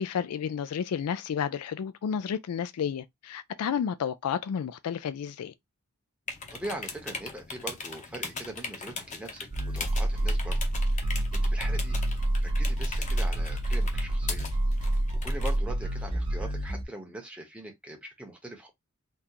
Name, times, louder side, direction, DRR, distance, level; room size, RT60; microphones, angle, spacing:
voice 1, 0.0-5.5, left 7 dB, 85° left, 0.3 m, -31 dB
sound 1, 6.3-15.6, left 4 dB, 35° left, 0.7 m, -40 dB
voice 2, 6.5-10.6 11.3-12.0 12.4-14.5 15.2-18.7, right 1 dB, 5° right, 0.8 m, -41 dB
sound 2, 9.5-16.8, right 1 dB, 20° right, 0.4 m, -28 dB
3.6 x 2.5 x 2.7 m
head